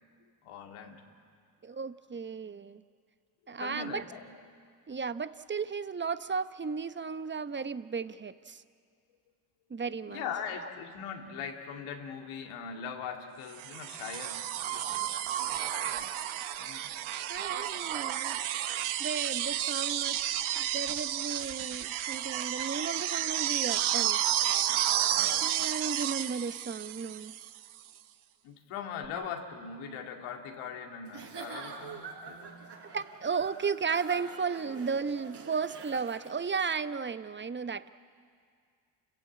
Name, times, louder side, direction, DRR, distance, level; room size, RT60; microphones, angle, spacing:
voice 1, 0.4-1.0 3.6-4.2 10.1-16.0 16.6-16.9 28.4-32.7, left 7 dB, 80° left, 3 dB, 2.3 m, -41 dB
voice 2, 1.6-2.8 3.5-4.0 4.9-8.6 9.7-10.3 10.6-10.7 17.1-18.4 19.0-20.2 20.6-24.7 25.3-27.3 29.2-29.3 32.9-37.9, right 5 dB, 20° right, 13 dB, 0.9 m, -35 dB
sound 1, 13.6-27.6 29.0-29.1, right 11 dB, 70° right, 1.2 m, -31 dB
Giggle / Chuckle chortle, 31.0-36.6, right 5 dB, 55° right, 5.1 m, -45 dB
29.0 x 15.5 x 8.6 m, 2.1 s
hypercardioid pair, 55°, 49 cm